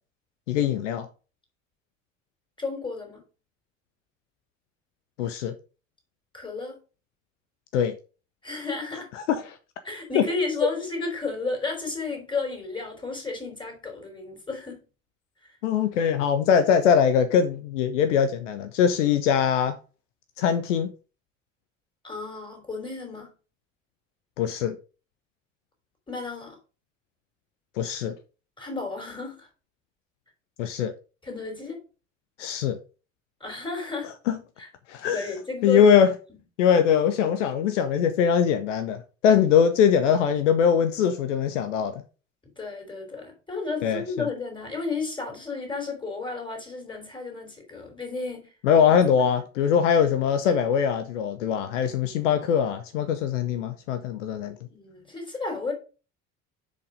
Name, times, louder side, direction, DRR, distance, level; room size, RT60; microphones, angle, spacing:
voice 1, 0.5-1.1 5.2-5.5 7.7-7.9 9.2-9.5 10.1-10.2 15.6-19.8 20.4-20.9 24.4-24.8 27.8-28.1 30.6-30.9 32.4-32.8 34.3-34.4 34.9-35.3 35.6-36.1 36.6-42.0 43.8-44.0 48.6-54.6, left 7 dB, 65° left, 0.8 m, -22 dB
voice 2, 2.6-3.2 6.3-6.8 8.4-9.1 9.8-14.8 22.0-23.3 26.1-26.6 28.6-29.5 31.2-31.8 33.4-34.1 34.6-34.7 35.1-35.9 36.3-36.4 42.6-48.5 48.8-49.3 54.7-55.7, left 3 dB, 10° left, 3.6 m, -33 dB
6.7 x 5.2 x 5.0 m
figure-of-eight pair, 60°, 39 cm